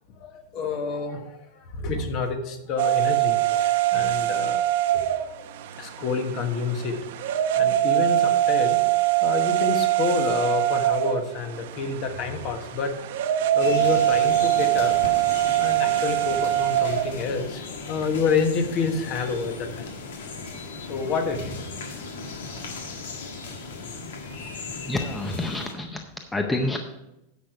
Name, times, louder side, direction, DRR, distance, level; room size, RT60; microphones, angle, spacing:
voice 1, 0.2-4.6 4.9-5.5 5.8-7.0 7.6-8.8 9.2-13.1 13.5-15.0 15.6-19.9 20.9-21.8, left 4 dB, 40° left, 7 dB, 1.2 m, -28 dB
sound 1, 2.8-17.2, right 14 dB, 65° right, 0.8 m, -23 dB
sound 2, 13.6-25.7, left 4 dB, 90° left, 1.7 m, -37 dB
voice 2, 24.8-26.8, left 2 dB, 10° left, 5 dB, 0.6 m, -28 dB
10.0 x 6.6 x 4.6 m, 0.91 s
supercardioid pair, 155°, 0 cm